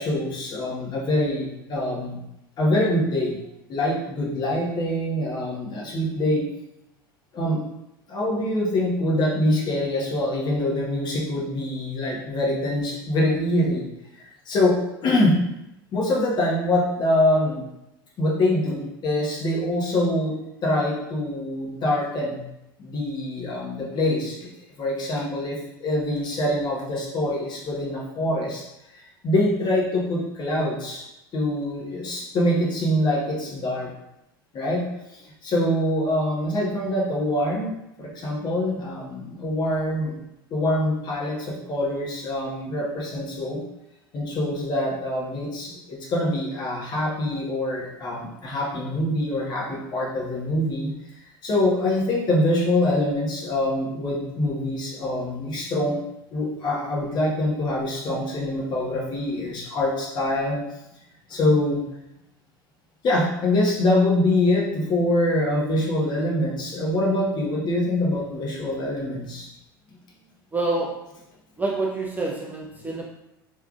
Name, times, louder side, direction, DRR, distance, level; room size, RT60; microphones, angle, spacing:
voice 1, 0.0-2.2 2.6-3.4 3.7-6.4 7.3-7.6 8.1-13.9 14.1-15.4 15.9-17.6 18.2-20.3 20.6-22.4 22.8-24.5 24.8-28.6 29.2-31.0 31.3-33.9 34.5-34.8 35.1-37.7 38.0-40.1 40.5-43.6 44.1-50.9 51.4-56.0 56.3-60.6 61.3-61.8 63.0-69.5, left 1 dB, 35° left, -3 dB, 1.2 m, -24 dB
voice 2, 70.5-71.0 71.6-73.0, right 2 dB, 15° right, -2 dB, 0.5 m, -27 dB
3.5 x 3.2 x 2.4 m, 0.87 s
hypercardioid pair, 80°, 12 cm